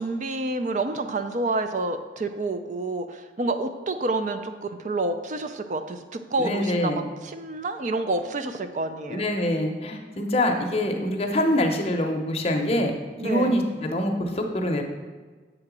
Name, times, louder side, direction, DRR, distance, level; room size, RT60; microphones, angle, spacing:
voice 1, 0.0-9.3 13.2-13.6, right 2 dB, 45° right, 8 dB, 0.4 m, -28 dB
voice 2, 6.4-7.0 9.1-12.9 13.2-14.8, left 1 dB, 35° left, 3 dB, 0.7 m, -25 dB
7.5 x 3.9 x 6.0 m, 1.4 s
head